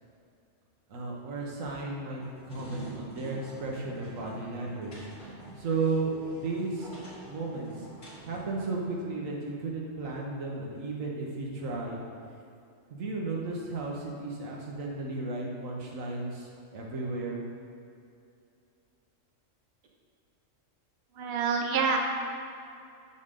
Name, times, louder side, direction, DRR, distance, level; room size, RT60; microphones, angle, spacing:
voice 1, 0.9-2.2 2.5-5.1 5.6-6.9 7.3-7.9 8.2-12.0 12.9-17.4, right 3 dB, 90° right, -2 dB, 1.5 m, -34 dB
sound 1, 2.1-8.4, right 1 dB, 65° left, 2.3 m, -46 dB
voice 2, 21.2-22.0, right 5 dB, 55° right, 2 dB, 0.8 m, -27 dB
6.4 x 6.3 x 3.7 m, 2.5 s
omnidirectional pair, 1.3 m